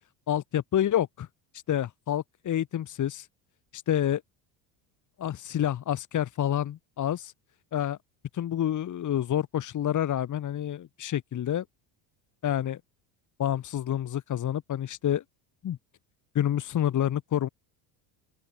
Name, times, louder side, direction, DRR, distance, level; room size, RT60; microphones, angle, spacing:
voice 1, 0.3-1.3 1.7-3.3 3.7-4.2 5.2-7.3 7.7-8.0 8.3-11.6 12.4-12.8 13.4-15.2 15.6-15.8 16.3-17.5, left 11 dB, 40° left, 2.4 m, -28 dB
open air
supercardioid pair, 110°, 45 cm